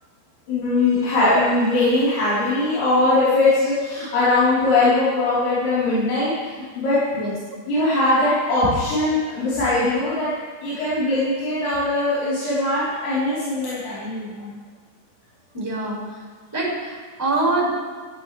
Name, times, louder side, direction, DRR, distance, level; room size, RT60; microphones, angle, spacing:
voice 1, 0.5-7.0 7.7-10.3 10.6-14.6, left 2 dB, 70° left, -13 dB, 6.3 m, -21 dB
voice 2, 15.5-16.0 16.5-17.8, right 2 dB, 5° right, -4 dB, 4.9 m, -24 dB
16.0 x 15.0 x 3.4 m, 1.5 s
omnidirectional pair, 4.8 m